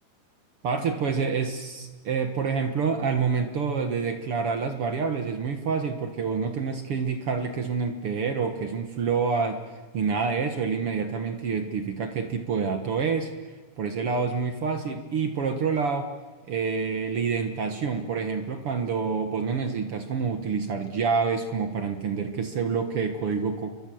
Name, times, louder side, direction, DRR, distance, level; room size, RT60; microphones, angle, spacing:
voice 1, 0.6-9.6 9.9-13.3 13.8-16.1 16.5-23.7, right 5 dB, 60° right, 7 dB, 1.6 m, -27 dB
30.0 x 23.5 x 7.8 m, 1.3 s
omnidirectional pair, 4.3 m